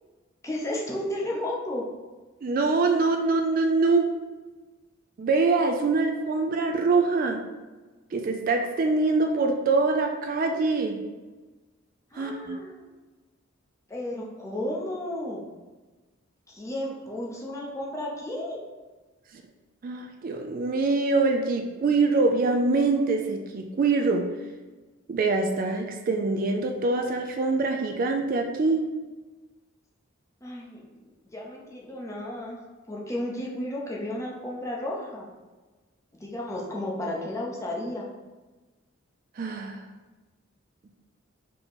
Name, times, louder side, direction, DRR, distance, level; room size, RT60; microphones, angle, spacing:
voice 1, 0.4-1.8 12.1-12.9 13.9-15.4 16.5-18.6 30.4-31.0 31.3-32.6 32.9-35.3 36.2-38.1, left 1 dB, 15° left, -3 dB, 0.6 m, -33 dB
voice 2, 2.4-4.1 5.2-7.4 8.1-11.0 12.1-12.6 19.8-24.3 25.1-28.8 39.4-39.8, right 3 dB, 45° right, 4 dB, 0.3 m, -24 dB
3.7 x 2.9 x 3.9 m, 1.2 s
head